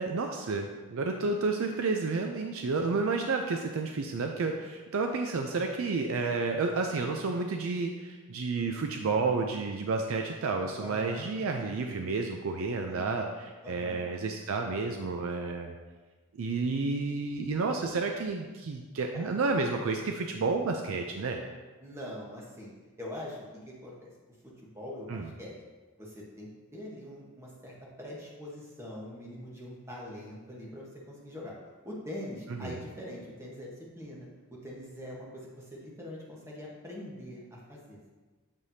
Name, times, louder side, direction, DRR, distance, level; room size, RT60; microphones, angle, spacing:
voice 1, 0.0-15.8 16.4-21.4 25.1-25.3 32.6-32.8, right 3 dB, 75° right, 3 dB, 0.4 m, -31 dB
voice 2, 10.8-11.3 12.9-13.2 13.6-14.1 19.1-19.3 21.8-22.7 23.0-24.1 24.4-25.5 26.0-31.5 31.8-38.1, left 1 dB, 15° right, -4 dB, 1.1 m, -43 dB
7.4 x 4.9 x 2.7 m, 1.3 s
head